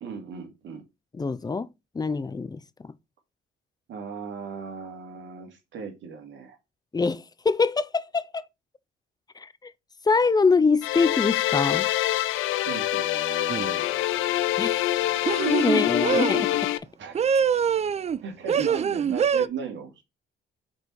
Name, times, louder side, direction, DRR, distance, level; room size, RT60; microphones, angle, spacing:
voice 1, 0.0-0.8 3.9-6.6 12.5-13.9 17.0-17.2 18.2-20.0, right 6 dB, 70° right, 2.1 m, -37 dB
voice 2, 1.2-1.7 1.9-2.9 6.9-8.5 9.4-9.7 10.0-11.9 14.6-15.0 15.6-16.6, left 4 dB, 20° left, 0.6 m, -24 dB
sound 1, 10.8-16.8, left 14 dB, 85° left, 0.5 m, -25 dB
sound 2, 13.5-13.8 15.3-16.4 17.2-18.2 18.5-19.5, right 7 dB, 35° right, 0.4 m, -24 dB
5.2 x 4.2 x 4.6 m
cardioid pair, 90°, 20 cm